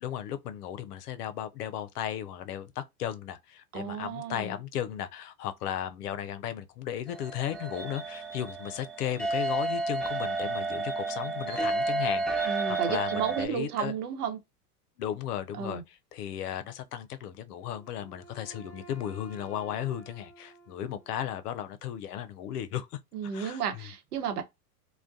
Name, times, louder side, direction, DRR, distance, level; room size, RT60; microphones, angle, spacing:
voice 1, 0.0-14.0 15.0-22.9 23.2-23.9, left 10 dB, 75° left, 0.6 m, -35 dB
voice 2, 3.7-4.5 12.5-14.4 15.6-15.8 23.1-24.4, right 7 dB, 70° right, 0.9 m, -33 dB
sound 1, 7.1-13.5, right 3 dB, ahead, 0.6 m, -31 dB
Wind instrument woodwind instrument, 17.6-21.5, right 4 dB, 30° left, 0.8 m, -52 dB
2.2 x 2.2 x 2.5 m
hypercardioid pair, 95°, 48 cm